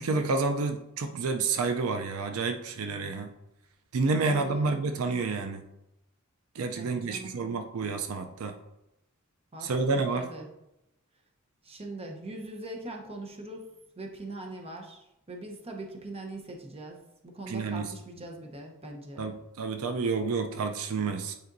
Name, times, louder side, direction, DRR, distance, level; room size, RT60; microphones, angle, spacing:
voice 1, 0.0-3.3 3.9-5.7 6.6-8.5 9.6-10.3 17.5-17.9 19.2-21.3, right 4 dB, 75° right, 6 dB, 0.5 m, -29 dB
voice 2, 4.3-4.8 6.6-7.4 9.5-10.5 11.6-19.3, right 2 dB, 30° right, 2 dB, 0.8 m, -42 dB
9.3 x 4.2 x 2.6 m, 0.89 s
head